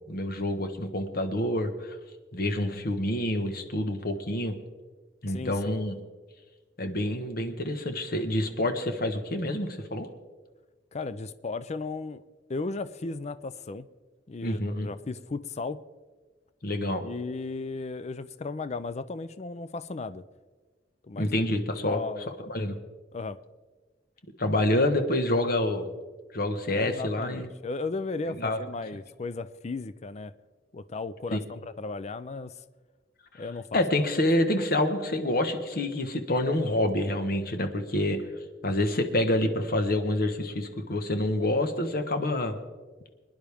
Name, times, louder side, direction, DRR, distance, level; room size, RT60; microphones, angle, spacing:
voice 1, 0.1-1.9 2.3-4.6 5.2-6.0 6.8-10.1 14.4-14.9 16.6-17.0 21.2-22.0 22.5-22.8 24.4-25.9 26.3-27.5 28.4-28.6 31.3-31.4 33.7-38.2 38.6-42.6, left 1 dB, 55° left, 7 dB, 1.3 m, -27 dB
voice 2, 5.3-5.8 10.9-12.2 12.5-13.9 14.3-15.8 17.0-20.2 21.0-21.5 21.8-22.3 23.1-23.4 26.7-30.3 30.7-32.6 33.3-33.8, left 3 dB, 40° left, 14 dB, 0.5 m, -35 dB
24.5 x 10.5 x 3.5 m, 1.3 s
head